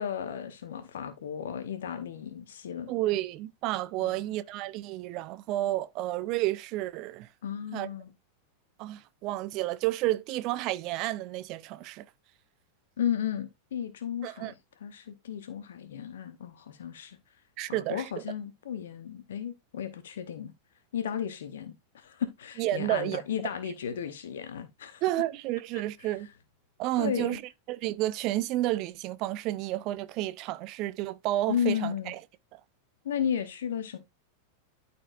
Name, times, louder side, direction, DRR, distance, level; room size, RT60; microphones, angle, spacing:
voice 1, 0.0-2.9 4.0-4.2 7.4-8.1 13.0-14.5 14.8-17.2 17.7-20.5 20.9-25.0 26.0-26.1 27.0-27.4 31.5-32.1 33.0-34.0, left 9 dB, 60° left, 0.8 m, -34 dB
voice 2, 2.9-7.3 7.7-7.9 8.8-12.0 14.2-14.5 17.6-18.1 22.6-23.2 25.0-26.3 26.8-27.4 27.7-32.2 32.5-32.6, right 16 dB, 40° right, 0.4 m, -31 dB
12.0 x 4.3 x 2.5 m
figure-of-eight pair, 90°, 0 cm